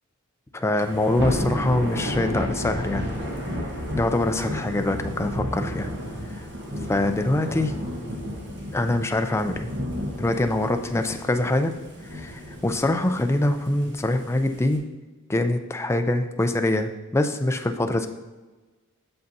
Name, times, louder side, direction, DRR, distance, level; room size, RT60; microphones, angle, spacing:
voice 1, 0.5-3.1 3.9-5.9 6.3-6.4 6.9-7.7 8.7-9.7 10.2-11.7 12.1-14.8 15.3-18.1, left 1 dB, 10° left, 7 dB, 0.4 m, -24 dB
Thunder / Rain, 0.8-14.8, equal, 55° right, 1.1 m, -32 dB
7.7 x 6.9 x 2.7 m, 1.2 s
head